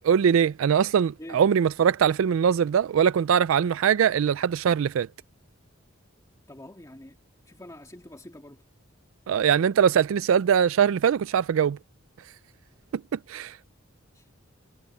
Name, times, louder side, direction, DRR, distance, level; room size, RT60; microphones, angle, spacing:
voice 1, 0.0-5.1 9.3-11.8 13.1-13.6, right 8 dB, 85° right, 0.3 m, -22 dB
voice 2, 6.5-7.2 7.5-8.6 14.1-14.3, left 1 dB, 15° left, 2.0 m, -45 dB
head